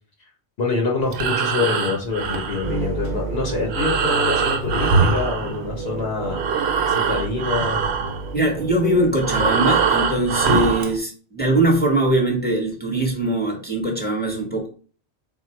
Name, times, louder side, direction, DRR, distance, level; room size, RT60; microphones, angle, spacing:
voice 1, 0.6-6.4 6.9-7.9, left 4 dB, 70° left, 0 dB, 1.1 m, -25 dB
Breathing, 1.0-6.0 6.3-11.0, right 5 dB, 75° right, 0.9 m, -23 dB
sound 1, 2.6-10.8, right 3 dB, 50° right, 0.7 m, -31 dB
voice 2, 8.3-14.7, right 1 dB, 10° left, 0 dB, 1.1 m, -21 dB
3.8 x 2.4 x 4.4 m, 0.39 s
omnidirectional pair, 1.1 m